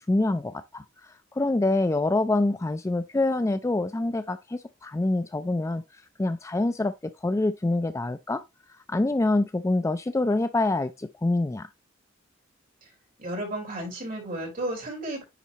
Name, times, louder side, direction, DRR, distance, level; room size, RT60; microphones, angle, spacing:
voice 1, 0.0-5.8 6.2-6.9 7.2-8.4 8.9-11.7, left 2 dB, 15° left, 0.3 m, -26 dB
voice 2, 13.2-15.2, right 1 dB, 45° right, 4.0 m, -33 dB
9.9 x 4.1 x 2.9 m
head